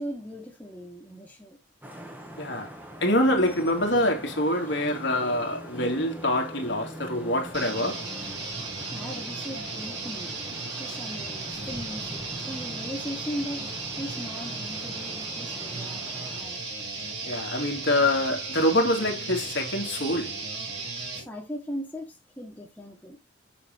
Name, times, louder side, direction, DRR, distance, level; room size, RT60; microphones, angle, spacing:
voice 1, 0.0-1.6 8.9-10.3 10.8-16.1 16.3-16.6 21.3-23.2, equal, 10° left, 1.8 m, -38 dB
Vehicle horn car horn honking / Traffic noise roadway noise, 1.8-16.4, equal, 10° right, 1.5 m, -43 dB
voice 2, 2.4-2.7 3.0-8.1 17.2-20.4, left 1 dB, 65° left, 2.3 m, -25 dB
sound 1, 7.5-21.2, right 3 dB, 60° right, 3.9 m, -35 dB
7.1 x 5.9 x 3.5 m
head